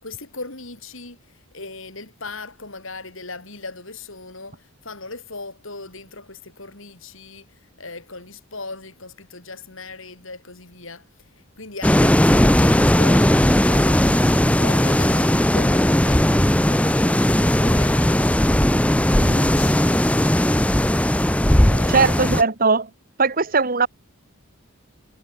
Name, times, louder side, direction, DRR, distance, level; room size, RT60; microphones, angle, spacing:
voice 1, 0.0-18.7 19.2-20.1 21.6-22.2, left 3 dB, 65° left, 6.7 m, -38 dB
sound 1, 11.8-22.4, equal, 5° left, 0.9 m, -17 dB
voice 2, 21.9-22.9 23.2-23.9, right 4 dB, 40° right, 1.5 m, -19 dB
head